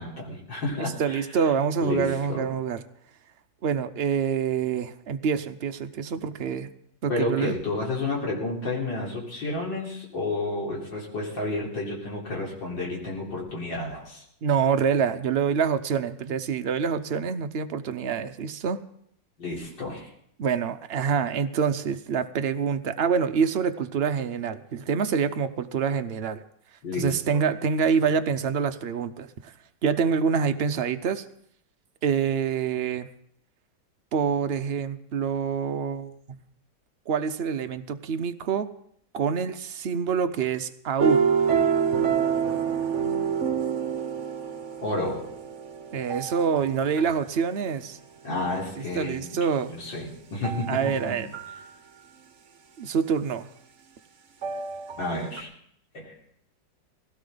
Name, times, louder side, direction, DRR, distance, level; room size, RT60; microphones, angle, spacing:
voice 1, 0.0-1.2 1.8-2.5 7.1-14.2 19.4-20.1 26.8-27.4 44.8-45.2 48.2-49.2 49.7-50.8 55.0-55.5 55.9-56.1, left 2 dB, 85° left, -3 dB, 4.4 m, -31 dB
voice 2, 1.0-2.8 3.6-6.7 7.0-7.5 14.4-18.8 20.4-26.4 27.0-29.5 29.8-31.2 32.0-33.1 34.1-36.1 37.1-38.7 39.1-41.2 45.9-48.0 48.9-49.7 50.7-51.3 52.8-53.5, right 6 dB, 65° right, 8 dB, 0.6 m, -26 dB
sound 1, 41.0-47.2 50.4-51.0 51.3-51.6 54.4-55.0 55.4-55.5, right 7 dB, 45° right, 1.3 m, -27 dB
19.0 x 16.5 x 3.9 m, 0.68 s
omnidirectional pair, 1.9 m